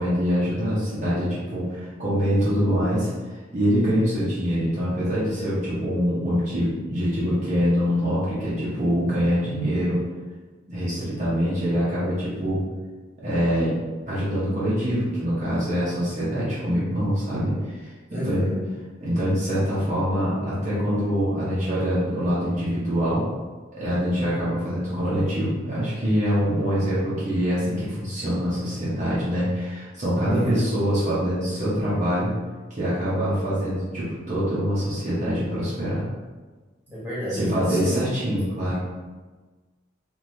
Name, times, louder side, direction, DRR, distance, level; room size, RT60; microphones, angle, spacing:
voice 1, 0.0-10.0 10.7-12.6 13.2-13.8 14.1-18.6 19.0-23.2 23.8-32.3 32.7-36.1 37.3-38.8, equal, 40° right, -10 dB, 0.7 m, -24 dB
voice 2, 18.1-18.6 30.1-30.5 36.9-37.9, equal, 10° right, -9 dB, 1.1 m, -30 dB
3.1 x 2.6 x 2.6 m, 1.3 s
head